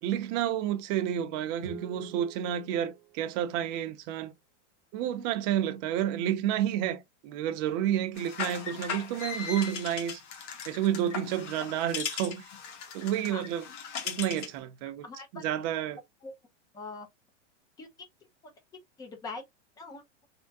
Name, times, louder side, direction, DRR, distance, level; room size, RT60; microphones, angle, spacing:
voice 1, 0.0-4.3 4.9-10.2 10.7-12.5 12.9-13.6 14.0-15.0 15.4-16.0, right 11 dB, 35° right, 0.6 m, -30 dB
Guitar, 1.6-4.2, right 11 dB, 70° right, 0.8 m, -48 dB
sound 1, 8.1-14.6, left 7 dB, 75° left, 1.1 m, -38 dB
voice 2, 15.0-15.4 16.2-16.3 16.7-17.1 17.8-17.9 19.0-19.4 19.8-20.0, left 3 dB, 10° left, 0.4 m, -42 dB
3.4 x 2.1 x 2.6 m
supercardioid pair, 150°, 37 cm